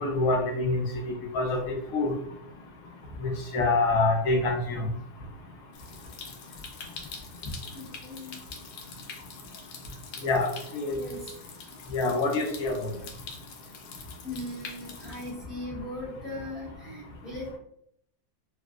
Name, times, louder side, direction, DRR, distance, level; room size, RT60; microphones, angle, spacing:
voice 1, 0.0-0.8 1.3-2.1 3.2-4.8 10.2-10.5 10.7-10.9 11.9-12.7, left 2 dB, 65° left, 0 dB, 0.9 m, -26 dB
Stream, 5.7-15.3, left 5 dB, 80° left, 1.3 m, -45 dB
voice 2, 7.7-8.4 10.9-11.2 14.2-17.6, left 1 dB, ahead, -7 dB, 0.4 m, -38 dB
3.2 x 2.5 x 2.4 m, 0.69 s
omnidirectional pair, 2.0 m